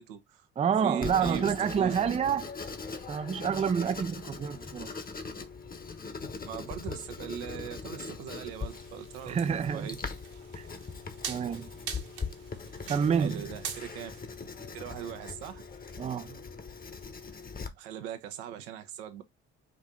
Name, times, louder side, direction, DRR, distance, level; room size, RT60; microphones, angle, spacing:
voice 1, 0.0-0.5 0.8-2.0 6.4-9.9 13.1-14.1 14.7-15.6 17.8-19.2, right 9 dB, 80° right, 0.9 m, -39 dB
voice 2, 0.6-2.5 3.1-4.9 9.3-9.9 10.6-10.7 11.3-11.7 12.9-13.4 16.0-16.3, right 7 dB, 20° right, 0.4 m, -28 dB
Writing, 1.0-17.7, left 5 dB, 30° left, 1.1 m, -41 dB
sound 1, 8.4-14.2, right 7 dB, 65° right, 1.5 m, -44 dB
5.0 x 2.7 x 3.6 m
hypercardioid pair, 60°, 30 cm